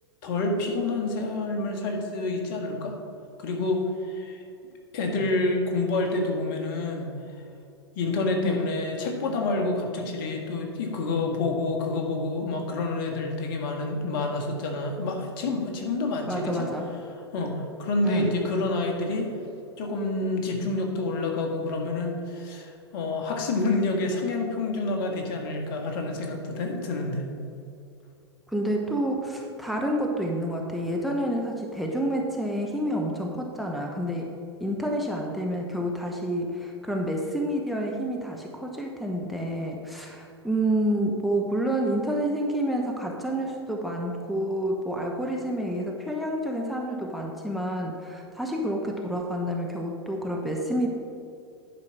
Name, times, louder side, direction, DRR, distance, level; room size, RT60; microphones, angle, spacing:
voice 1, 0.2-2.9 3.4-4.4 4.9-7.2 7.9-16.7 17.3-19.3 19.8-27.3, left 2 dB, 50° left, 2 dB, 1.8 m, -28 dB
voice 2, 16.3-16.9 18.0-18.3 28.5-34.3 34.6-50.9, right 1 dB, ahead, 1 dB, 0.9 m, -29 dB
10.5 x 4.8 x 5.9 m, 2.5 s
figure-of-eight pair, 100°, 14 cm